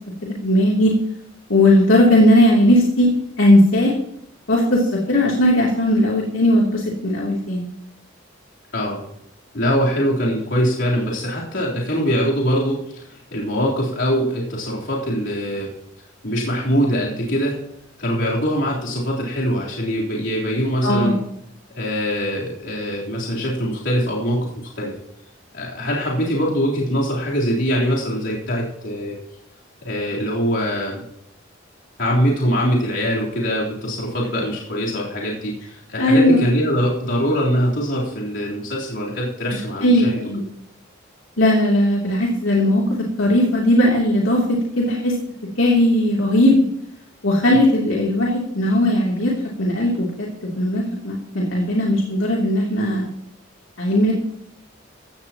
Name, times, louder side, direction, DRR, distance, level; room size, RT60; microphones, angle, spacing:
voice 1, 0.2-0.9 1.5-3.1 3.4-3.9 4.5-7.6 20.8-21.1 36.0-36.4 39.8-40.4 41.4-45.1 45.6-46.7 47.2-49.3 49.6-50.3 50.6-53.0 53.8-54.1, left 1 dB, 85° left, -3 dB, 3.0 m, -17 dB
voice 2, 8.7-9.0 9.5-15.7 16.2-17.6 18.0-21.2 21.8-24.5 24.8-24.9 25.5-29.2 29.8-31.0 32.0-40.2, equal, 65° left, -5 dB, 3.7 m, -22 dB
15.5 x 15.5 x 3.0 m, 0.75 s
head